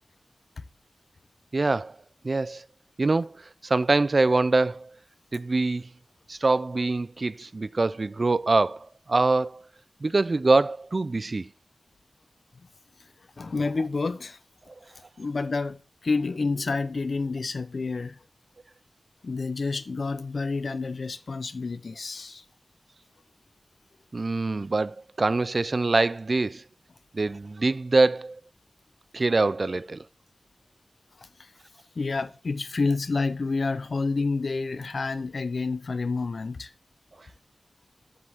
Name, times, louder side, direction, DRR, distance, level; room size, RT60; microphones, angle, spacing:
voice 1, 1.5-2.0 2.2-2.6 3.0-3.3 3.6-4.9 5.3-5.9 6.3-9.6 10.0-11.5 24.1-26.6 27.1-28.4 29.1-30.0, right 3 dB, 50° right, 0.3 m, -24 dB
voice 2, 13.4-14.4 15.2-18.2 19.2-22.4 32.0-36.7, left 3 dB, 70° left, 0.6 m, -29 dB
7.9 x 7.6 x 3.5 m
wide cardioid pair, 75°, 0 cm